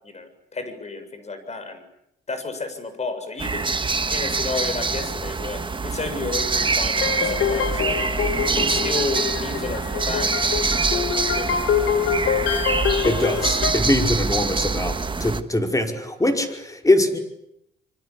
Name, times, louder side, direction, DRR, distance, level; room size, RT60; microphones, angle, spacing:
voice 1, 0.0-1.8 2.3-3.7 4.1-8.1 8.5-11.5, left 3 dB, 35° left, 10 dB, 7.2 m, -32 dB
sound 1, 3.4-15.4, right 4 dB, 25° right, 1.6 m, -25 dB
sound 2, 7.0-13.7, left 7 dB, 75° left, 3.8 m, -25 dB
voice 2, 13.0-17.2, left 1 dB, 15° left, 5 dB, 5.4 m, -22 dB
27.0 x 24.5 x 8.6 m, 0.80 s
cardioid pair, 90°, 20 cm